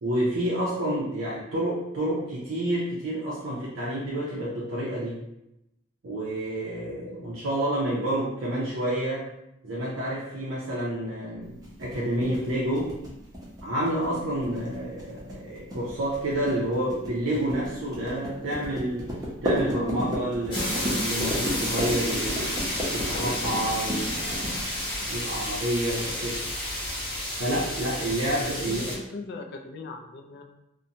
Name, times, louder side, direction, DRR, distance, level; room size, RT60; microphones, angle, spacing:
voice 1, 0.0-5.2 6.0-9.2 9.6-12.9 13.6-19.1 19.4-22.6 22.9-24.7 25.1-26.4 27.4-28.8, right 1 dB, 85° right, -6 dB, 0.6 m, -29 dB
sound 1, 11.6-25.4, equal, 20° right, 0.6 m, -33 dB
sound 2, 20.5-28.9, left 1 dB, 25° left, 0.7 m, -31 dB
voice 2, 28.6-30.4, left 3 dB, 55° left, 3 dB, 0.3 m, -39 dB
2.5 x 2.1 x 2.7 m, 0.86 s
head